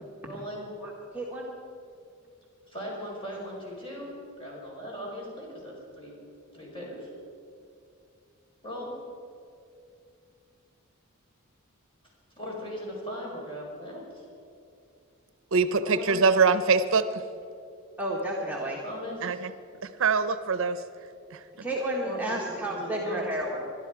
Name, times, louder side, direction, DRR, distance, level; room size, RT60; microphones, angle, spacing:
voice 1, 0.2-0.7 2.7-6.1 6.5-7.1 8.6-8.9 12.4-14.2 15.8-16.2 18.8-19.4 22.0-22.4 22.7-23.6, equal, 25° left, -4 dB, 4.9 m, -38 dB
voice 2, 0.8-1.5 18.0-18.8 21.6-23.6, right 1 dB, 10° right, -4 dB, 1.5 m, -32 dB
voice 3, 15.5-17.1 19.2-19.5 19.8-20.8, right 4 dB, 65° right, 12 dB, 0.6 m, -23 dB
21.5 x 12.0 x 4.8 m, 2.5 s
head